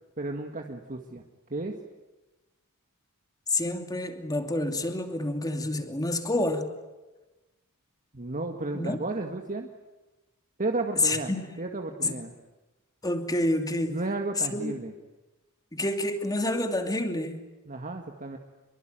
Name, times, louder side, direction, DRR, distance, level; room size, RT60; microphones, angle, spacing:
voice 1, 0.2-1.2 1.5-1.8 8.1-9.7 10.6-12.3 13.9-14.9 17.7-18.4, right 2 dB, 40° right, 4 dB, 1.9 m, -33 dB
voice 2, 3.5-6.7 8.7-9.0 11.0-11.5 12.0-12.1 13.0-14.0 14.5-14.7 15.7-17.4, left 1 dB, 15° left, 7 dB, 2.8 m, -28 dB
26.0 x 23.0 x 9.1 m, 1.1 s
head